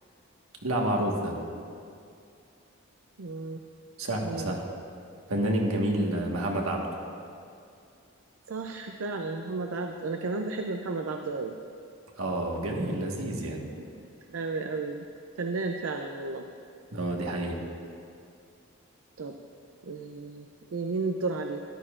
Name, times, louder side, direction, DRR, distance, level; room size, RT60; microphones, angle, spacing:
voice 1, 0.6-1.3 4.0-4.6 5.3-6.9 12.2-13.6 16.9-17.6, right 1 dB, 90° right, 0 dB, 1.5 m, -29 dB
voice 2, 3.2-3.6 4.2-4.6 8.5-11.6 13.8-13.9 14.3-15.0 15.4-16.5 19.2-19.3 19.8-20.5 20.7-21.6, right 3 dB, 75° right, 4 dB, 0.5 m, -33 dB
14.0 x 12.0 x 2.5 m, 2.4 s
head